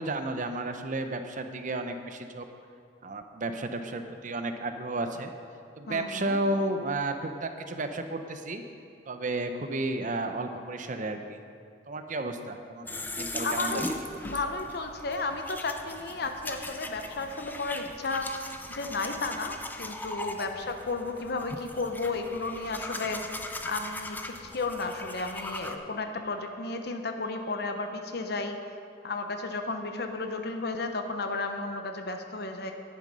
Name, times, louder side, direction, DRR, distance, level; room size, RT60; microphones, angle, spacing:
voice 1, 0.0-2.4 3.0-5.3 5.8-8.6 9.1-11.4 11.9-13.8, right 2 dB, 45° right, 7 dB, 0.7 m, -32 dB
voice 2, 5.9-6.4 13.4-13.9 14.2-18.3 18.7-23.3 23.7-28.7 29.0-32.7, left 3 dB, 60° left, 6 dB, 0.9 m, -33 dB
sound 1, 12.9-25.8, left 2 dB, 10° left, 0.5 m, -39 dB
10.5 x 9.3 x 5.4 m, 2.4 s
head